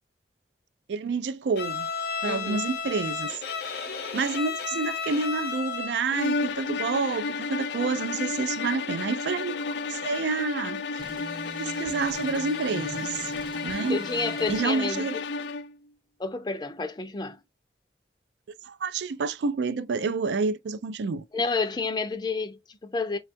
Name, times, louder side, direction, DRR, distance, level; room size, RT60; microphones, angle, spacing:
voice 1, 0.9-1.9 2.2-3.4 4.1-10.8 11.5-13.3 13.6-14.0 14.5-15.2 18.6-21.2, right 4 dB, 85° right, 0.4 m, -29 dB
Bowed string instrument, 1.6-6.1, left 5 dB, 70° left, 0.8 m, -33 dB
voice 2, 2.2-2.6 13.9-15.2 16.2-17.4 21.3-23.2, left 3 dB, 25° left, 0.4 m, -30 dB
sound 1, 6.1-15.8, left 4 dB, 90° left, 0.4 m, -32 dB
sound 2, 11.0-14.7, right 2 dB, 25° right, 0.6 m, -43 dB
4.3 x 2.3 x 2.6 m
head